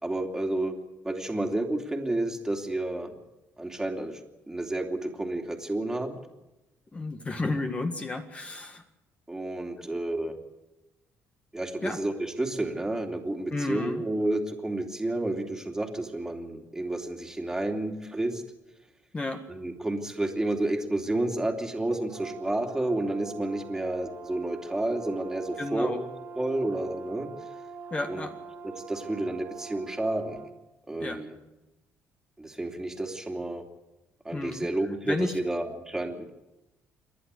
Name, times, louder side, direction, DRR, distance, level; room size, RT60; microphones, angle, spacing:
voice 1, 0.0-0.8 1.0-3.1 3.6-4.2 4.5-6.2 9.3-10.4 11.5-18.4 19.5-26.1 26.3-27.3 28.1-28.2 28.6-30.4 30.9-31.4 32.4-33.6 34.2-36.3, right 1 dB, 10° right, 2 dB, 2.8 m, -30 dB
voice 2, 6.9-8.8 9.8-9.9 11.8-12.0 13.5-14.0 19.1-19.4 25.6-26.0 27.9-28.3 31.0-31.2 34.3-34.7 35.0-35.3, left 2 dB, 25° left, 5 dB, 1.8 m, -32 dB
Brass instrument, 22.1-30.5, right 5 dB, 50° right, 2.3 m, -43 dB
28.0 x 11.0 x 8.4 m, 0.98 s
cardioid pair, 110°, 5 cm